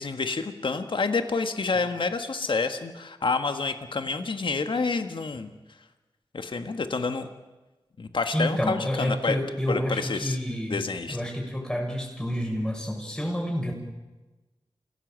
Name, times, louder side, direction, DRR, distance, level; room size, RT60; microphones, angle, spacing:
voice 1, 0.0-5.5 6.3-7.3 8.0-9.4 9.7-10.4 10.7-11.2, left 4 dB, 65° left, 8 dB, 1.7 m, -28 dB
voice 2, 8.3-13.7, equal, 10° left, -1 dB, 7.0 m, -29 dB
28.5 x 17.0 x 7.7 m, 1.1 s
wide cardioid pair, 65°, 9 cm